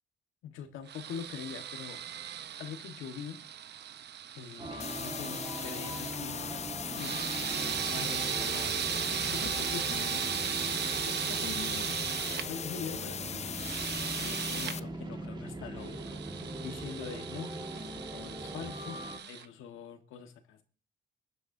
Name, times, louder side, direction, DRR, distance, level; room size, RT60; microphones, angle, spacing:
voice 1, 0.4-2.0 2.6-3.4 4.3-7.1 7.4-8.7 9.3-10.2 11.0-12.1 12.4-13.7 14.2-16.2 16.6-17.8 18.1-19.0 19.3-20.6, left 7 dB, 85° left, 6 dB, 1.4 m, -44 dB
sound 1, 0.9-6.1 6.9-12.5 13.5-14.8 15.8-19.5, right 9 dB, 60° right, 0.7 m, -37 dB
sound 2, 4.6-19.2, right 1 dB, 20° right, 1.6 m, -41 dB
sound 3, 4.8-14.8, left 7 dB, 35° left, 0.4 m, -39 dB
21.5 x 9.3 x 2.7 m, 0.39 s
cardioid pair, 90°, 20 cm